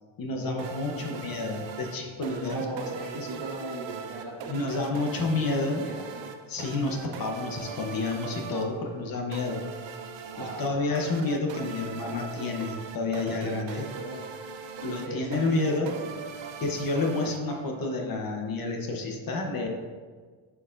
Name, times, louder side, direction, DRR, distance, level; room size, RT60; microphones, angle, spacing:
voice 1, 0.2-2.7 3.2-3.3 4.5-5.9 6.5-9.6 10.4-13.8 14.8-15.9 16.6-19.7, left 3 dB, 45° left, 2 dB, 0.9 m, -29 dB
sound 1, 0.6-18.0, right 6 dB, 65° right, 0.6 m, -41 dB
voice 2, 0.8-1.2 2.4-4.8 5.5-6.3 10.2-10.8 13.7-14.3 14.9-16.2, right 2 dB, 45° right, -1 dB, 1.4 m, -39 dB
10.5 x 4.7 x 2.5 m, 1.6 s
cardioid pair, 150°, 48 cm